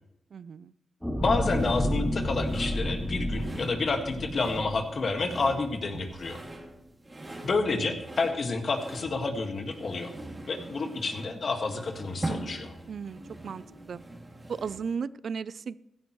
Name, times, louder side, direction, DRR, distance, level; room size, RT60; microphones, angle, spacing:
voice 1, 0.3-0.7 7.7-7.9 12.9-13.6 13.9-14.0 14.5-15.8, right 6 dB, 70° right, 19 dB, 0.4 m, -35 dB
sound 1, 1.0-5.5 6.0-6.1, equal, ahead, 2.7 m, -31 dB
voice 2, 1.2-6.4 7.4-10.1 10.5-12.7, left 3 dB, 60° left, 5 dB, 1.8 m, -29 dB
sound 2, 1.5-14.9, right 2 dB, 25° right, 2.5 m, -42 dB
16.0 x 12.0 x 3.2 m, 0.85 s
cardioid pair, 70°, 0 cm